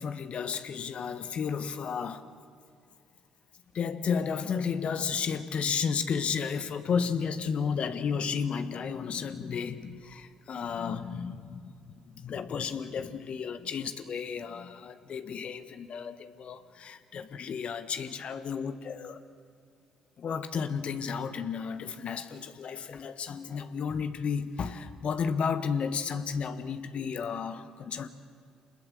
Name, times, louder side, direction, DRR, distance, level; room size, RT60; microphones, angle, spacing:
voice 1, 0.0-2.2 3.7-11.7 12.1-19.2 20.2-28.1, left 6 dB, 55° left, 1.5 m, -33 dB
27.5 x 21.0 x 7.8 m
hypercardioid pair, 50°, 2 cm